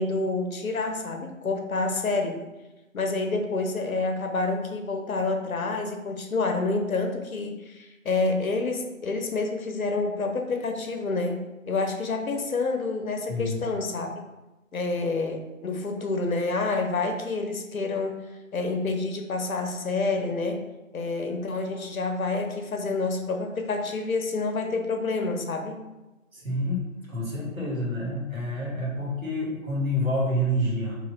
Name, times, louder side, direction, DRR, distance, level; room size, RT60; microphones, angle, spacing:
voice 1, 0.0-2.4 2.9-14.2 14.7-18.2 18.5-20.6 20.9-25.8, left 3 dB, 80° left, 4 dB, 0.7 m, -28 dB
voice 2, 26.3-30.9, equal, 75° right, -5 dB, 1.5 m, -28 dB
3.1 x 2.7 x 2.9 m, 1.1 s
figure-of-eight pair, 150°, 41 cm